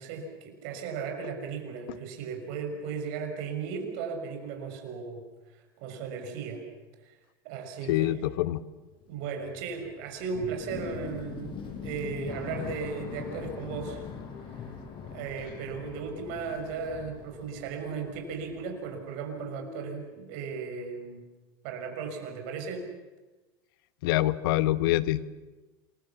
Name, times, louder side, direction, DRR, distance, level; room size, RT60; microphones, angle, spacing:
voice 1, 0.0-5.2 5.8-6.6 7.0-7.1 7.4-8.3 9.1-14.0 15.0-21.2 21.6-22.9, right 5 dB, 65° right, 5 dB, 6.2 m, -36 dB
voice 2, 7.9-8.6 24.0-25.2, left 15 dB, 70° left, 14 dB, 1.2 m, -25 dB
sound 1, 8.9-19.0 19.3-20.1, left 6 dB, 45° left, 5.9 m, -42 dB
27.5 x 22.5 x 7.2 m, 1.2 s
hypercardioid pair, 95°, 12 cm